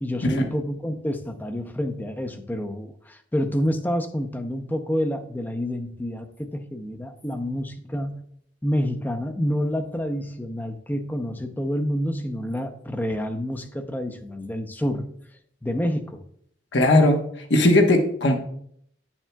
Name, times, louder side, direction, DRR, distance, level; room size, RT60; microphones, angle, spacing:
voice 1, 0.0-8.2 8.6-15.1 15.6-16.2, equal, 10° left, 6 dB, 0.6 m, -28 dB
voice 2, 16.7-17.2 17.5-18.4, left 1 dB, 70° left, 4 dB, 1.1 m, -17 dB
10.5 x 7.2 x 2.3 m, 0.66 s
head